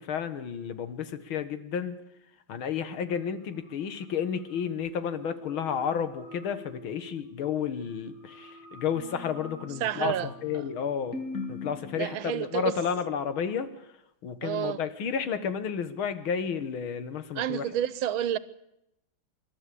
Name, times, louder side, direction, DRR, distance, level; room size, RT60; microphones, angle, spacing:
voice 1, 0.0-2.0 2.5-11.2 11.5-17.6, left 7 dB, 85° left, 2.2 m, -32 dB
sound 1, 3.1-13.5, equal, 65° left, 5.9 m, -57 dB
sound 2, 4.9-13.7, left 2 dB, 35° right, 1.8 m, -51 dB
sound 3, 9.0-12.6, left 4 dB, 45° left, 2.9 m, -41 dB
voice 2, 9.8-10.3 10.5-10.6 11.9-12.7 14.4-14.8 17.3-18.4, right 10 dB, 80° right, 1.7 m, -29 dB
26.0 x 12.0 x 8.3 m
omnidirectional pair, 2.2 m